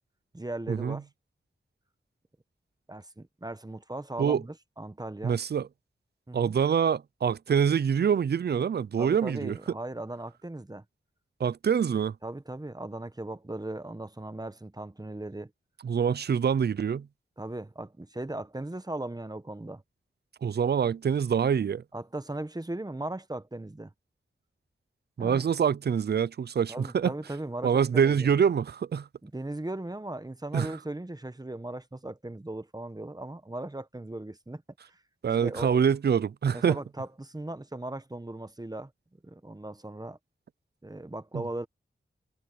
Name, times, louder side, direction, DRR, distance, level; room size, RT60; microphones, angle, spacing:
voice 1, 0.3-1.1 2.9-5.4 6.3-6.5 9.0-10.8 12.2-15.5 17.4-19.8 21.9-23.9 25.2-25.5 26.7-28.3 29.2-34.6 34.9-35.0 35.4-35.8 36.5-38.9 39.2-40.2 40.8-41.7, right 2 dB, 20° right, 1.1 m, -38 dB
voice 2, 5.2-5.7 6.3-9.6 11.4-12.1 15.8-17.1 20.4-21.8 25.2-27.1 27.6-29.1 30.5-30.7 35.2-36.8, right 7 dB, 55° right, 0.4 m, -25 dB
wide cardioid pair, 65°, 20 cm